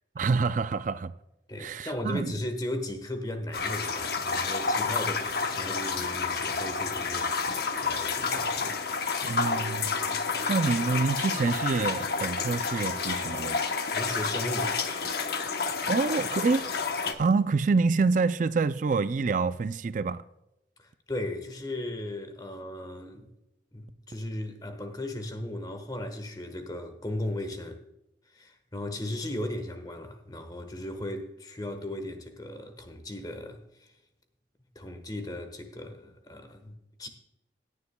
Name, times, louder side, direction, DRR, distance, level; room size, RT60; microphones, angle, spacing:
voice 1, 0.2-1.1 1.6-2.3 9.2-9.9 10.5-13.6 15.9-16.7 17.2-20.2, right 4 dB, 45° right, 0.4 m, -27 dB
voice 2, 1.5-8.8 9.9-10.4 13.7-14.8 20.8-23.3 23.7-27.8 28.3-33.9 34.7-37.1, left 1 dB, 20° left, 1.2 m, -37 dB
sound 1, 3.5-17.1, left 5 dB, 60° left, 0.9 m, -30 dB
17.0 x 9.9 x 2.3 m
head